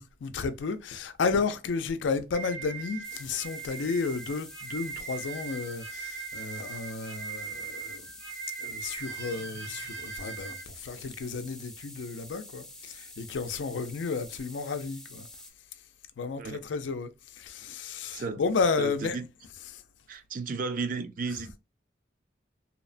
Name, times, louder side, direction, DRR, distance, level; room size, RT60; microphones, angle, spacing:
voice 1, 0.0-8.1 8.6-15.3 16.2-19.8 21.3-21.4, left 4 dB, 80° left, 0.4 m, -32 dB
sound 1, 2.3-10.6, right 6 dB, 90° right, 1.1 m, -40 dB
sound 2, 3.0-15.5, left 2 dB, 5° left, 0.5 m, -48 dB
voice 2, 18.8-19.2 20.1-21.6, right 4 dB, 50° right, 0.4 m, -34 dB
2.8 x 2.1 x 2.4 m
head